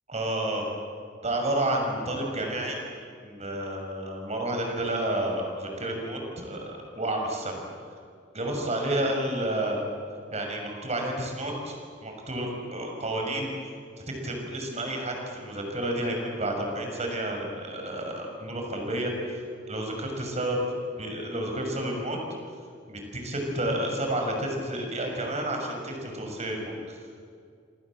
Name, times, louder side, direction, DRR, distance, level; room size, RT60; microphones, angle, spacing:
voice 1, 0.1-0.6 1.2-2.8 3.2-7.6 8.3-9.8 10.3-11.8 12.0-13.5 14.1-19.4 19.7-20.6 21.0-22.2 22.9-27.0, right 1 dB, 35° right, 2 dB, 6.5 m, -30 dB
27.5 x 26.5 x 7.7 m, 2.3 s
head